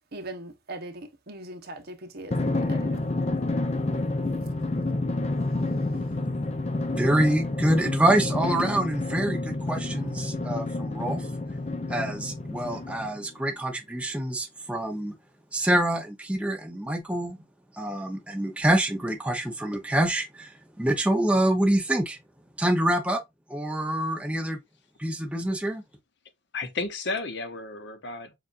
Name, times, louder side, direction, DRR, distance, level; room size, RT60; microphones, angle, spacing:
voice 1, 0.1-3.0, right 1 dB, 55° right, 1.0 m, -40 dB
Drum, 2.3-13.3, left 2 dB, 35° left, 0.6 m, -29 dB
voice 2, 6.9-11.3 11.9-15.1 15.5-17.4 17.7-22.2 22.6-23.2 23.5-24.6 25.0-25.8, right 1 dB, 5° right, 0.8 m, -26 dB
voice 3, 26.5-28.4, left 3 dB, 60° left, 0.9 m, -33 dB
6.9 x 2.5 x 2.5 m
head